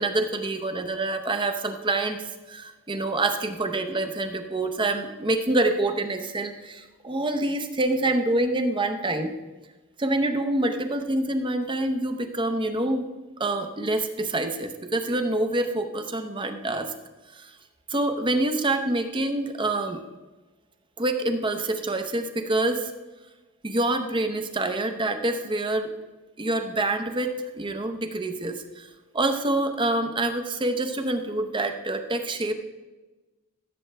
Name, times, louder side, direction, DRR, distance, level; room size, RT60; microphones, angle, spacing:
voice 1, 0.0-9.3 10.0-13.1 13.4-16.9 17.4-17.5 17.9-20.0 21.0-22.9 23.6-25.9 26.4-28.9 29.1-32.5, right 2 dB, 20° right, 7 dB, 0.7 m, -26 dB
15.5 x 7.9 x 3.3 m, 1.2 s
head